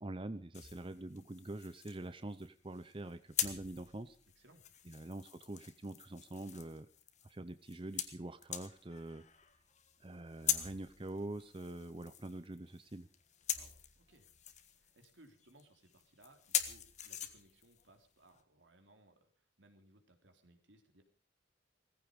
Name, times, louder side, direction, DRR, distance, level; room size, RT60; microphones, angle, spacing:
voice 1, 0.0-4.2 4.9-6.9 7.2-9.2 10.0-13.1, right 2 dB, 30° right, 12 dB, 0.7 m, -45 dB
sound 1, 0.5-18.4, left 10 dB, 40° left, 1.5 m, -43 dB
voice 2, 4.4-5.0 13.6-14.3 14.7-21.0, right 1 dB, 85° right, 5 dB, 3.5 m, -65 dB
18.5 x 15.0 x 5.2 m, 0.40 s
head